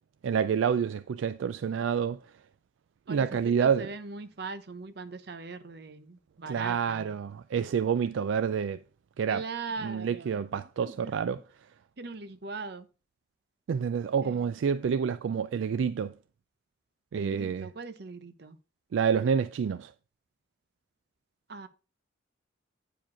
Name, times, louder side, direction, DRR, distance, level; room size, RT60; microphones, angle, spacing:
voice 1, 0.2-2.2 3.1-3.9 6.5-8.8 9.2-9.4 9.8-11.4 13.7-16.1 17.1-17.7 18.9-19.9, right 7 dB, 75° right, 0.3 m, -28 dB
voice 2, 3.1-7.1 9.3-10.4 10.8-11.1 12.0-12.9 14.2-14.4 17.1-18.6 21.5-21.7, right 3 dB, 55° right, 0.8 m, -40 dB
9.0 x 4.9 x 4.7 m
head